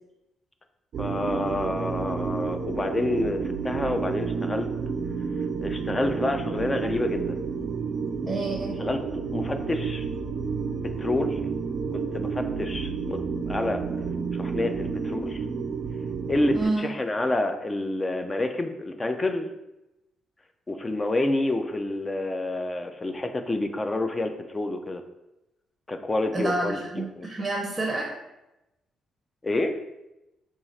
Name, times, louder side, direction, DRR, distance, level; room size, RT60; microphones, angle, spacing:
sound 1, 0.9-16.7, right 5 dB, 60° right, 0.4 m, -30 dB
voice 1, 1.0-4.7 5.6-7.4 8.8-10.1 11.0-11.4 11.9-13.8 14.3-15.4 16.3-19.5 20.7-25.0 25.9-27.3 29.4-29.8, left 2 dB, 25° left, 7 dB, 0.4 m, -28 dB
voice 2, 8.2-8.8 16.5-16.9 26.3-28.1, right 2 dB, 20° right, -1 dB, 0.7 m, -28 dB
4.5 x 2.4 x 4.1 m, 0.94 s
cardioid pair, 90°, 0 cm